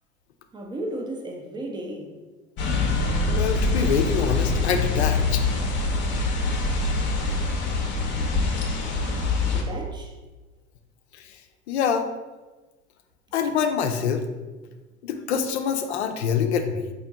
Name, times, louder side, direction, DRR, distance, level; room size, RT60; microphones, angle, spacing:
voice 1, 0.5-2.2 9.4-10.1, right 1 dB, 10° right, 2 dB, 0.6 m, -34 dB
sound 1, 2.6-9.6, left 3 dB, 30° left, 0.7 m, -24 dB
voice 2, 3.3-5.4 11.1-11.4 11.7-12.1 13.3-14.2 15.0-16.9, left 7 dB, 60° left, 6 dB, 0.6 m, -25 dB
4.4 x 2.7 x 3.8 m, 1.2 s
figure-of-eight pair, 75°, 37 cm